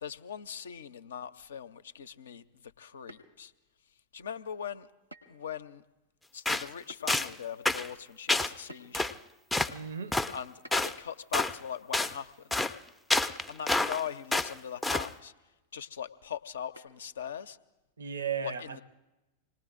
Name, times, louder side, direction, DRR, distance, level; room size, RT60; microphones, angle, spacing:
voice 1, 0.0-3.5 4.1-4.9 5.3-5.8 6.3-9.2 10.3-12.5 13.5-15.3 15.7-17.6 18.4-18.8, left 8 dB, 65° left, 0.5 m, -40 dB
sound 1, 3.1-3.7 5.1-5.5 5.8-5.9 6.9-7.1 8.7-9.2 10.6-11.1 12.8-13.0 13.3-13.5 13.8-13.9 15.0-15.3 16.8-17.2, left 1 dB, 85° right, 1.0 m, -52 dB
sound 2, 6.5-6.7 7.1-7.3 7.7-7.9 8.3-8.5 8.9-9.1 9.5-9.7 10.1-10.3 10.7-10.9 11.3-11.5 11.9-12.1 12.5-12.7 13.1-14.0 14.3-14.5 14.8-15.1, left 2 dB, 5° left, 0.4 m, -28 dB
voice 2, 9.7-10.2 18.0-18.8, right 7 dB, 70° right, 0.7 m, -35 dB
26.5 x 19.5 x 2.5 m
figure-of-eight pair, 90°, 0 cm